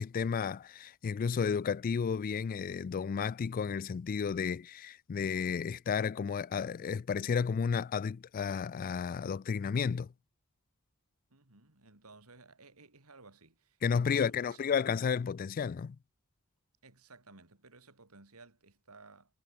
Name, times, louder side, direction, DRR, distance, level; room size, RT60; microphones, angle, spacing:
voice 1, 0.0-10.1 13.8-16.0, left 6 dB, 40° left, 0.3 m, -32 dB
voice 2, 11.3-14.7 16.8-19.3, right 3 dB, 85° right, 3.2 m, -57 dB
head